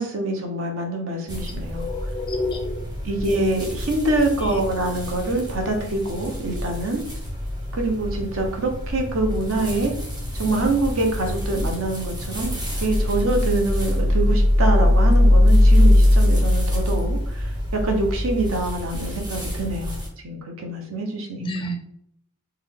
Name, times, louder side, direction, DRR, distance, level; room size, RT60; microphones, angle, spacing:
voice 1, 0.0-1.9 3.0-7.0 7.7-9.9 10.3-20.0 20.2-21.4, right 2 dB, 60° right, 2 dB, 0.8 m, -25 dB
sound 1, 1.3-20.1, left 1 dB, 20° right, 0.8 m, -22 dB
voice 2, 1.4-2.9 4.4-4.6 21.4-21.8, left 1 dB, 20° left, 4 dB, 0.4 m, -30 dB
3.6 x 2.2 x 3.4 m, 0.74 s
head